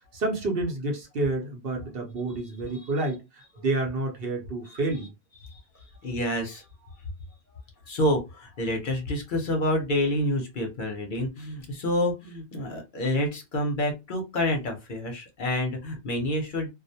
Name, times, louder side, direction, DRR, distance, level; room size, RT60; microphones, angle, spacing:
voice 1, 0.1-5.1, right 2 dB, 60° right, 0.9 m, -29 dB
voice 2, 6.0-6.6 7.9-16.7, left 1 dB, 55° left, 0.7 m, -28 dB
2.3 x 2.1 x 2.7 m
omnidirectional pair, 1.1 m